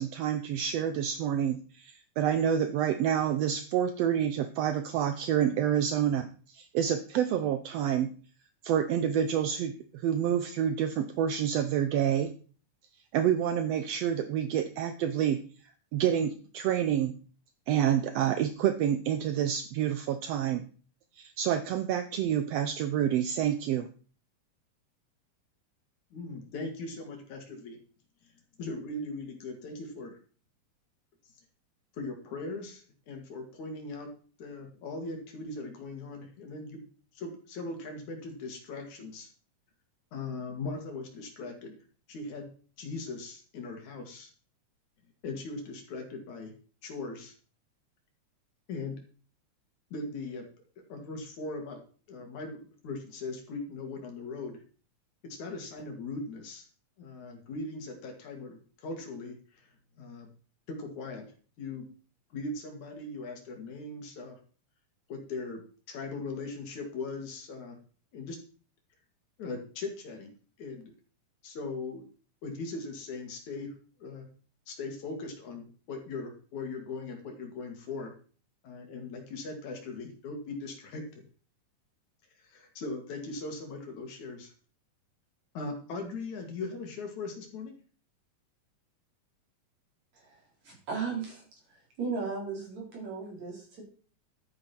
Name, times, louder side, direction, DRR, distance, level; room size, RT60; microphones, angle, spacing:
voice 1, 0.0-8.1 8.6-9.7 10.0-12.3 13.1-15.4 15.9-17.2 17.7-20.7 21.2-23.9, right 9 dB, 75° right, 9 dB, 1.5 m, -28 dB
voice 2, 26.1-27.8 28.6-30.2 31.9-34.1 34.4-36.8 37.2-39.3 40.1-41.8 42.1-42.5 42.8-44.3 45.2-46.5 46.8-47.3 48.7-49.0 49.9-50.5 50.9-51.8 52.1-54.6 55.2-56.7 57.0-59.7 60.0-60.3 60.7-61.3 61.6-61.9 62.3-64.4 65.1-65.6 65.9-67.8 68.1-68.4 69.4-70.3 70.6-70.9 71.4-72.1 72.4-74.3 74.7-78.1 78.6-81.2 82.4-84.5 85.6-87.8, left 3 dB, 65° left, 3 dB, 3.5 m, -39 dB
voice 3, 90.6-91.4 91.7-93.8, right 5 dB, 55° right, -2 dB, 5.9 m, -36 dB
12.0 x 9.3 x 4.5 m, 0.40 s
omnidirectional pair, 3.7 m